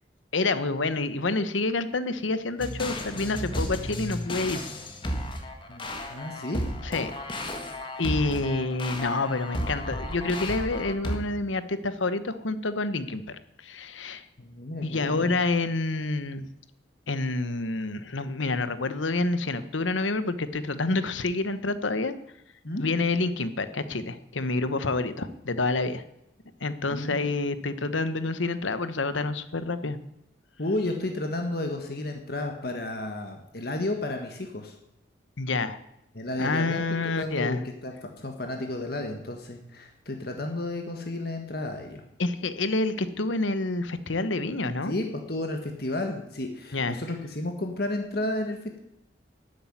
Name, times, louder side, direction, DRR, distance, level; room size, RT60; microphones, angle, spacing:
voice 1, 0.3-4.7 6.8-7.1 8.0-14.2 14.8-16.4 17.1-22.1 22.8-26.0 26.6-30.0 35.4-35.8 36.4-37.6 42.2-44.9 46.7-47.0, left 3 dB, 90° left, 13 dB, 1.1 m, -28 dB
sound 1, 2.6-11.2, left 1 dB, 25° left, 1.6 m, -33 dB
voice 2, 5.7-6.7 8.3-8.4 14.4-15.3 22.6-22.9 26.9-27.3 30.6-34.7 36.1-42.0 44.9-48.8, left 2 dB, 55° left, 4 dB, 1.5 m, -32 dB
12.0 x 8.6 x 9.8 m, 0.83 s
head